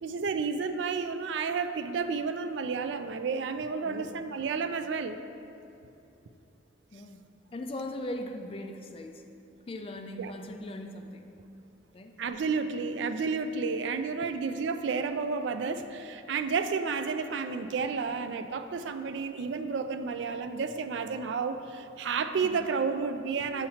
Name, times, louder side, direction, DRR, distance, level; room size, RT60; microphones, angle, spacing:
voice 1, 0.0-5.2 10.2-10.3 12.2-23.7, right 5 dB, 80° right, 9 dB, 0.4 m, -31 dB
voice 2, 3.8-4.2 6.9-7.2 7.5-9.2 9.7-11.3 11.9-12.1 22.4-22.6, left 1 dB, 30° left, 5 dB, 0.4 m, -39 dB
7.5 x 7.1 x 2.8 m, 2.7 s
head